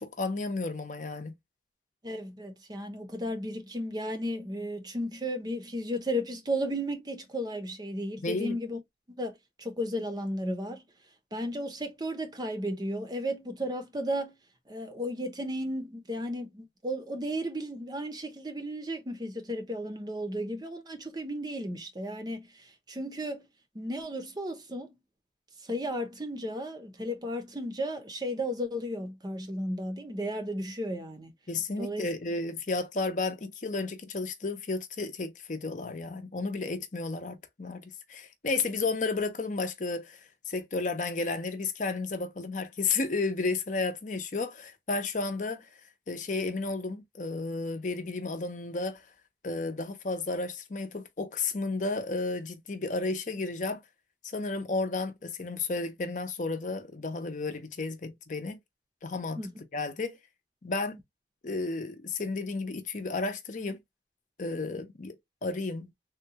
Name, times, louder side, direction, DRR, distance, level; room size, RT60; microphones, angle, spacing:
voice 1, 0.0-1.3 8.2-8.6 31.5-40.2 40.5-45.7 46.1-49.0 49.4-53.8 54.3-58.6 59.0-59.4 59.7-60.2 60.6-61.0 61.4-63.8 64.4-65.2 65.4-65.9, left 3 dB, 45° left, 0.7 m, -32 dB
voice 2, 2.0-8.8 9.1-9.3 9.6-10.8 11.3-14.3 14.7-22.4 22.9-23.4 23.7-24.9 25.7-31.3 31.8-32.1 59.4-59.5, equal, 25° right, 0.7 m, -34 dB
3.6 x 2.3 x 2.7 m
head